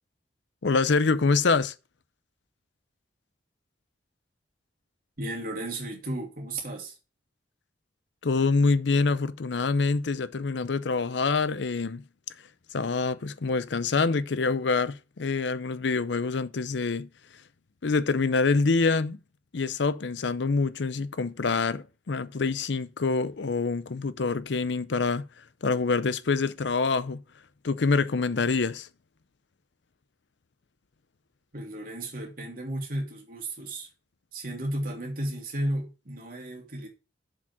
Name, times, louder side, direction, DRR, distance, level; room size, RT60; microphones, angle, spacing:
voice 1, 0.6-1.7 8.2-12.0 12.7-17.1 17.8-19.2 19.5-25.3 25.6-27.2 27.6-28.9, left 4 dB, 70° left, 0.6 m, -26 dB
voice 2, 5.2-7.0 31.5-33.9 34.3-36.9, right 1 dB, 50° right, 2.9 m, -34 dB
7.3 x 5.1 x 6.0 m
head